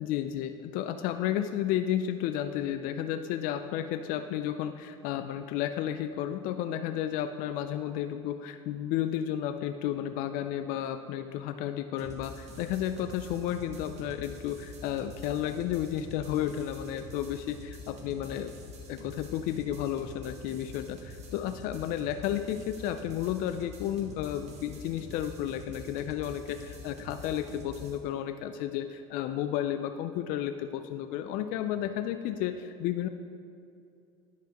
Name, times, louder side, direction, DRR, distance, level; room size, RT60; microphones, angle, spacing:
voice 1, 0.0-18.5 18.9-33.1, left 11 dB, 60° left, 9 dB, 0.4 m, -32 dB
sound 1, 12.0-28.0, left 1 dB, 40° right, 1.2 m, -46 dB
10.0 x 5.8 x 2.9 m, 2.4 s
supercardioid pair, 100°, 16 cm